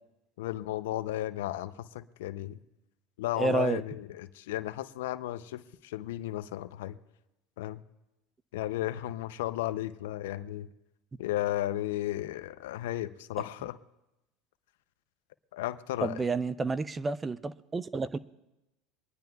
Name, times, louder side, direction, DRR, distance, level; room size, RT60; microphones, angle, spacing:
voice 1, 0.4-2.6 3.2-7.0 7.6-7.8 8.5-10.7 11.2-13.8 15.5-16.2, left 14 dB, 85° left, 14 dB, 0.5 m, -34 dB
voice 2, 3.4-3.8 16.0-18.2, right 3 dB, 20° right, 17 dB, 0.4 m, -30 dB
25.0 x 10.5 x 2.3 m, 0.93 s
supercardioid pair, 105°, 0 cm